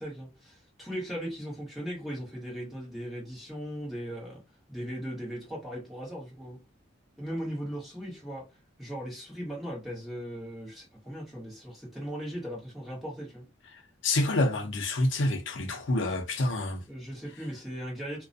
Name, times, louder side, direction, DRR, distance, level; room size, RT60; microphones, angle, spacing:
voice 1, 0.0-4.4 4.7-6.6 7.2-8.5 8.8-13.5 16.9-18.2, equal, ahead, 1.2 m, -38 dB
voice 2, 14.0-16.8, left 2 dB, 65° left, 0.6 m, -27 dB
2.4 x 2.2 x 2.6 m
head